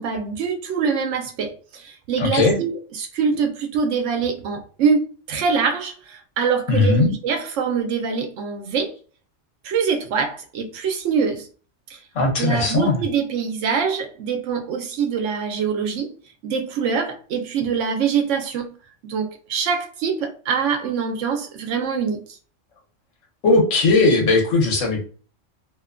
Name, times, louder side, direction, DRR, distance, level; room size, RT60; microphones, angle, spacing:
voice 1, 0.0-8.9 9.6-11.5 11.9-12.0 12.4-16.1 16.4-18.7 19.0-22.2, right 6 dB, 75° right, 0.9 m, -24 dB
voice 2, 2.2-2.6 6.7-7.1 12.1-13.0 23.4-25.1, left 3 dB, 80° left, 1.2 m, -18 dB
2.8 x 2.2 x 2.3 m
omnidirectional pair, 1.3 m